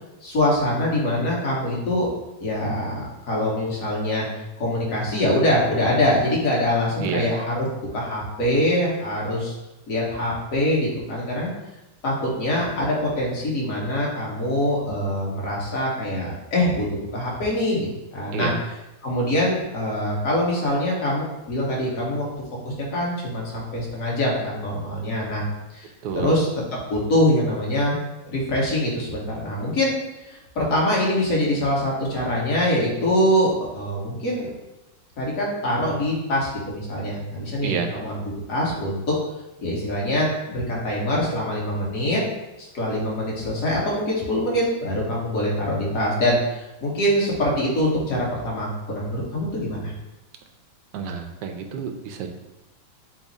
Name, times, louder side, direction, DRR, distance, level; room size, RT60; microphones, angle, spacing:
voice 1, 0.2-2.1 2.4-4.3 4.6-7.7 7.9-9.5 9.9-11.5 12.0-18.5 19.0-22.2 22.6-25.4 25.7-25.9 26.1-26.5 26.9-28.0 28.2-29.9 30.3-34.5 35.2-39.0 39.6-42.2 42.6-49.9, left 1 dB, 50° left, -4 dB, 1.3 m, -24 dB
voice 2, 7.0-7.3 18.3-18.6 26.0-26.4 37.6-37.9 50.9-52.3, right 6 dB, 75° right, 4 dB, 1.0 m, -29 dB
5.9 x 2.0 x 4.0 m, 0.98 s
omnidirectional pair, 2.2 m